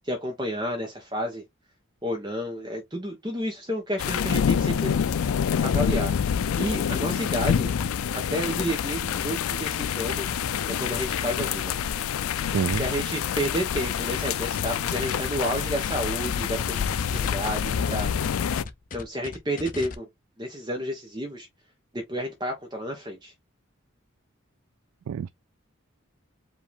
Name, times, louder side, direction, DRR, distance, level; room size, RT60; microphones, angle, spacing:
voice 1, 0.0-1.4 2.0-4.9 5.6-7.7 8.1-10.3 10.7-11.8 12.7-16.8 17.1-18.1 18.9-20.1 20.4-21.5 21.9-23.3, equal, 20° right, 0.9 m, -31 dB
sound 1, 4.0-18.6, left 8 dB, 90° left, 0.4 m, -27 dB
voice 2, 12.5-12.8 25.1-25.3, right 7 dB, 80° right, 0.3 m, -27 dB
sound 2, 14.6-19.9, left 4 dB, 40° left, 0.6 m, -39 dB
5.0 x 2.7 x 3.4 m
head